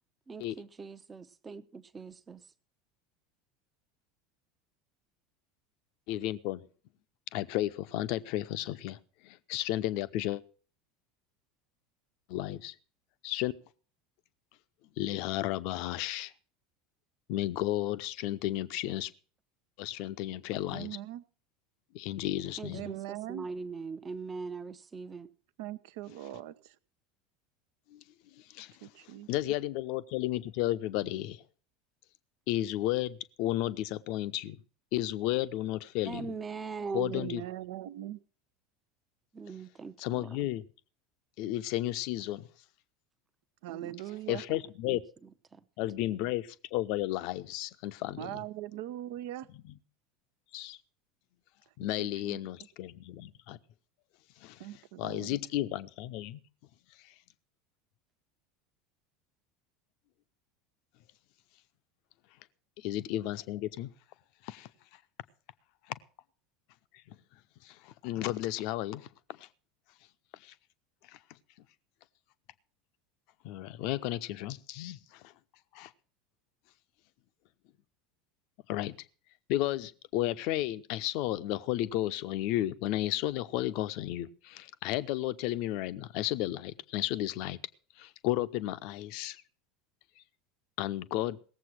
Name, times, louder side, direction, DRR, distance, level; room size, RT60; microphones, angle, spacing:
voice 1, 0.3-2.5 22.6-25.3 36.1-37.3 39.3-40.5 43.7-44.0 44.3-44.6 44.9-45.6 46.0-46.3, right 4 dB, 20° right, 0.8 m, -41 dB
voice 2, 6.1-6.6 7.3-9.0 9.2-10.4 12.3-12.7 13.2-13.5 15.0-16.3 17.3-19.1 19.8-20.9 21.9-22.9 27.9-28.0 28.5-28.9 29.3-31.4 32.5-34.6 34.9-36.3 36.9-37.4 40.0-40.6 41.4-42.5 44.3-45.0 45.8-48.4 50.5-50.8 51.8-53.6 54.4-54.6 55.0-56.4 62.8-63.9 64.4-64.7 67.6-69.1 69.4-69.5 70.4-70.5 73.4-75.0 75.7-75.9 78.7-79.0 79.5-87.6 88.0-89.4 90.8-91.4, left 15 dB, 55° left, 0.7 m, -33 dB
voice 3, 20.7-21.2 22.7-23.5 25.6-26.8 28.8-29.5 37.1-38.2 43.6-44.4 48.2-49.5 52.0-52.4 54.6-55.4, right 13 dB, 60° right, 0.7 m, -41 dB
18.0 x 7.6 x 6.0 m
figure-of-eight pair, 75°, 0 cm